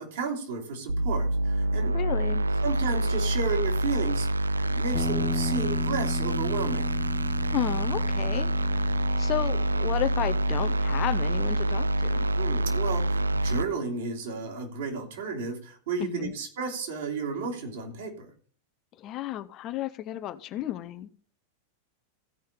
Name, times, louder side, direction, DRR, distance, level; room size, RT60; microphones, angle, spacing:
voice 1, 0.0-2.1 2.6-6.9 12.3-18.3, right 5 dB, 55° right, 1 dB, 2.9 m, -33 dB
sound 1, 0.9-13.6, right 1 dB, 75° right, 0.4 m, -26 dB
voice 2, 1.9-2.5 7.5-8.5 9.2-12.3 16.0-16.3 19.0-21.1, left 13 dB, 35° left, 10 dB, 0.7 m, -32 dB
sound 2, 4.9-13.3, left 3 dB, 15° left, 1.5 m, -37 dB
15.5 x 5.6 x 5.1 m, 0.43 s
figure-of-eight pair, 90°, 0 cm